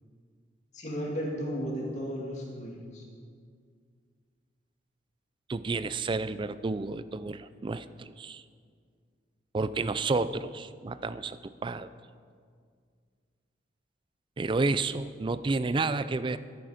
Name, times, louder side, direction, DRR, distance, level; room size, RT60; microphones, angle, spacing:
voice 1, 0.7-3.0, equal, 40° left, -2 dB, 2.5 m, -34 dB
voice 2, 5.5-8.4 9.5-11.9 14.4-16.4, right 3 dB, 25° right, 14 dB, 0.4 m, -30 dB
13.0 x 10.5 x 5.0 m, 2.1 s
head